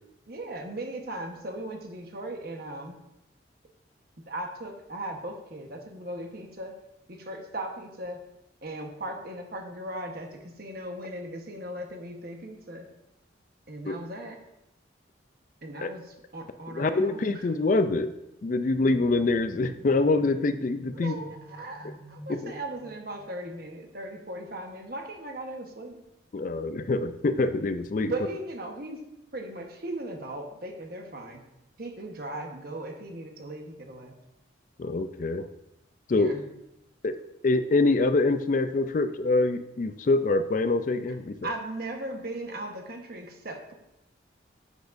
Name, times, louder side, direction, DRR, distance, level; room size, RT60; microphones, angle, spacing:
voice 1, 0.3-3.0 4.3-6.7 7.1-8.2 8.6-12.9 13.7-14.4 15.6-17.5 20.9-26.0 28.0-29.1 29.3-31.4 31.8-34.1 36.1-36.4 41.4-43.7, right 1 dB, 50° right, 3 dB, 1.2 m, -38 dB
voice 2, 16.7-18.1 18.4-21.1 22.3-22.5 26.3-28.1 34.8-35.5 36.1-36.4 37.0-41.5, left 3 dB, 40° left, 10 dB, 0.4 m, -25 dB
sound 1, 18.7-23.3, equal, 25° left, 1.9 m, -48 dB
10.0 x 8.2 x 2.6 m, 0.88 s
head